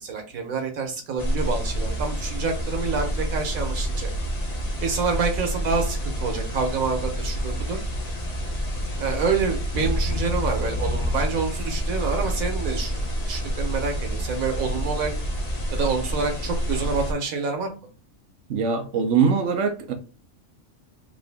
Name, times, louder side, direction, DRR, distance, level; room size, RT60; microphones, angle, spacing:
voice 1, 0.0-4.1 4.8-7.8 9.0-15.1 15.7-17.7, right 4 dB, 90° right, 1.4 m, -27 dB
sound 1, 1.2-17.1, equal, 35° left, 0.9 m, -28 dB
voice 2, 18.5-19.9, right 6 dB, 65° right, 1.0 m, -22 dB
3.6 x 2.5 x 3.4 m
omnidirectional pair, 1.4 m